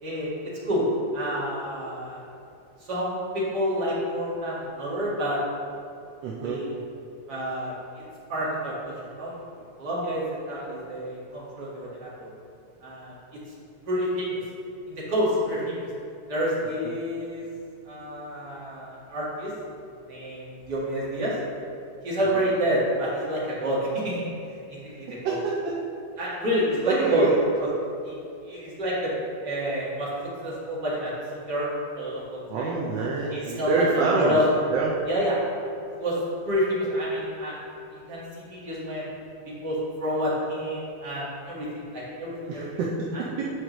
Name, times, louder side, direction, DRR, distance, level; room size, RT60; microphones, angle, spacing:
voice 1, 1.1-2.2 2.8-5.4 6.4-6.7 7.3-8.0 8.3-9.4 9.8-12.3 12.8-13.2 13.9-14.4 14.9-15.9 16.3-17.4 17.9-19.5 20.1-21.4 22.0-25.4 26.2-27.3 27.6-27.7 28.0-29.1 29.4-30.1 30.4-32.7 33.3-34.4 35.1-35.4 35.6-36.2 36.4-37.6 37.9-39.1 39.5-42.7 43.1-43.2, equal, 50° right, -8 dB, 2.2 m, -29 dB
voice 2, 6.2-6.6 25.1-25.7 26.9-27.4 32.5-34.4 34.7-35.0 42.5-43.5, right 4 dB, 70° right, -3 dB, 1.3 m, -26 dB
9.1 x 4.8 x 3.0 m, 2.6 s
omnidirectional pair, 2.3 m